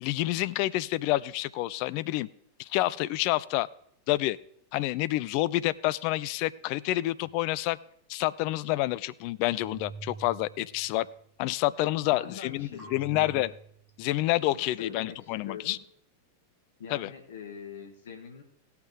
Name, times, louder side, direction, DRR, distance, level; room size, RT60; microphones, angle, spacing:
voice 1, 0.0-2.3 2.6-3.7 4.1-4.4 4.7-7.8 8.1-11.1 11.4-13.5 14.0-15.8 16.9-17.1, left 17 dB, 45° left, 17 dB, 0.4 m, -28 dB
sound 1, 7.2-7.4 9.6-11.2 12.8-14.2, right 4 dB, 5° left, 4.8 m, -47 dB
voice 2, 12.0-13.5 14.5-15.8 16.8-18.4, left 7 dB, 60° left, 4 dB, 1.5 m, -43 dB
17.0 x 5.9 x 4.7 m, 0.68 s
figure-of-eight pair, 90°, 0 cm